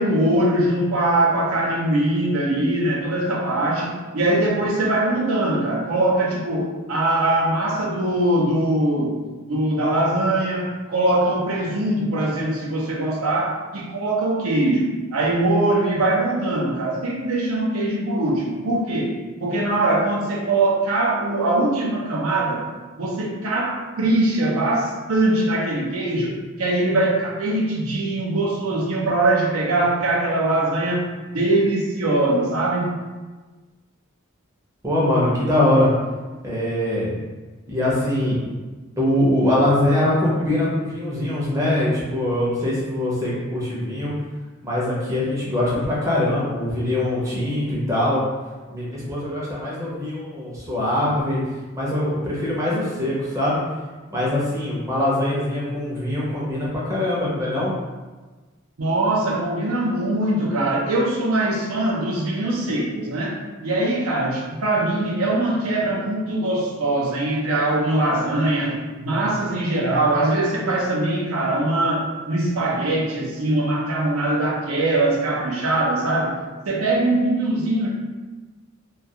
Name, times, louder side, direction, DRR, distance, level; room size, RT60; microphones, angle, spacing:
voice 1, 0.0-9.1 9.5-19.1 19.4-22.6 23.0-31.1 31.3-32.9 47.3-47.4 58.8-63.3 63.6-76.3 76.7-77.9, right 2 dB, 75° right, -3 dB, 0.5 m, -22 dB
voice 2, 34.8-35.9 36.4-37.1 37.7-38.4 39.0-44.1 44.6-48.2 48.7-51.4 51.7-53.6 54.1-57.7, left 1 dB, 15° right, -7 dB, 0.5 m, -22 dB
2.3 x 2.3 x 2.7 m, 1.3 s
head